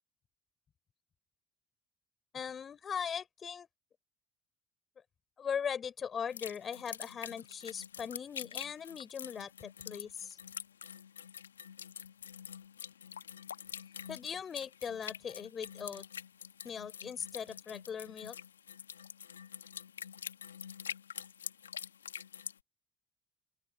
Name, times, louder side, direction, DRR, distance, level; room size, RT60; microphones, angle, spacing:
voice 1, 2.3-3.7 5.4-10.4 14.1-16.0 16.6-18.4, left 7 dB, 40° left, 4.3 m, -39 dB
sound 1, 6.3-22.6, left 8 dB, 90° left, 1.4 m, -46 dB
open air
hypercardioid pair, 55°, 0 cm